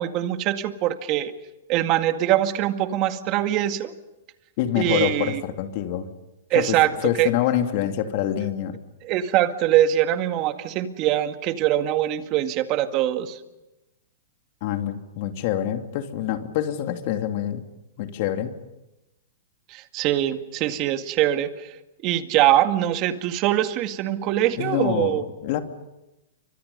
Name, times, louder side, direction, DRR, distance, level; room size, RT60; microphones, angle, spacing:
voice 1, 0.0-1.3 1.7-3.9 4.8-5.4 6.5-6.9 7.2-7.3 9.0-13.4 19.7-21.8 22.0-25.2, right 12 dB, 40° right, 8 dB, 2.0 m, -23 dB
voice 2, 4.6-6.1 6.5-6.8 7.0-8.8 14.6-17.6 18.0-18.6 24.6-25.6, left 11 dB, 50° left, 6 dB, 2.7 m, -26 dB
29.5 x 25.0 x 5.5 m, 0.96 s
hypercardioid pair, 130°, 0 cm